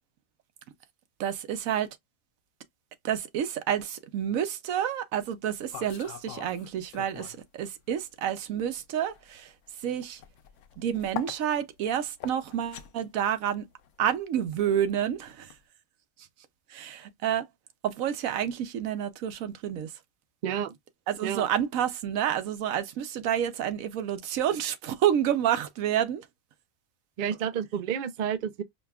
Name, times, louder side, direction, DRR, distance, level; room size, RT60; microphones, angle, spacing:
voice 1, 1.2-1.9 3.0-9.5 9.8-10.2 10.8-13.7 14.0-15.5 16.7-17.5 17.8-19.9 21.1-26.3, right 10 dB, 85° right, 1.1 m, -29 dB
sound 1, 5.4-7.5 7.8-15.6, left 11 dB, 70° left, 0.9 m, -44 dB
voice 2, 20.4-20.7 21.2-21.4 27.2-28.6, right 8 dB, 60° right, 0.5 m, -30 dB
4.9 x 2.3 x 2.3 m
omnidirectional pair, 1.4 m